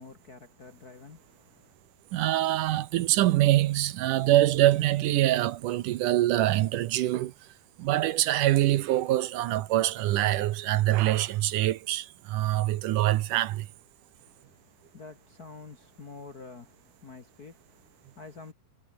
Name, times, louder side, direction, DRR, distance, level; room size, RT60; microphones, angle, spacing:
voice 1, 0.0-1.7 14.2-18.5, left 4 dB, 35° left, 1.6 m, -48 dB
voice 2, 2.1-7.3 7.8-13.7, right 14 dB, 75° right, 2.3 m, -24 dB
omnidirectional pair, 3.9 m